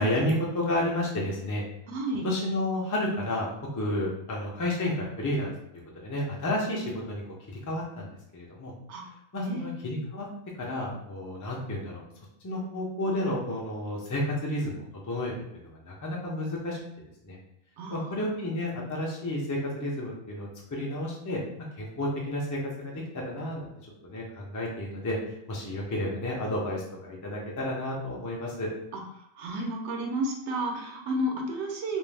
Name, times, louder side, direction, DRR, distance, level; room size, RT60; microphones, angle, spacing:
voice 1, 0.0-1.6 2.2-5.5 6.0-7.2 7.7-8.7 9.3-10.3 10.6-12.0 12.4-16.8 17.2-17.4 17.9-21.4 21.8-23.7 24.0-25.2 25.5-28.7, left 1 dB, 30° left, -3 dB, 0.3 m, -31 dB
voice 2, 1.9-2.3 8.9-9.0 9.4-9.7 17.8-18.1 29.2-32.0, right 1 dB, 80° right, 1 dB, 0.9 m, -32 dB
2.5 x 2.0 x 3.2 m, 0.78 s
omnidirectional pair, 1.2 m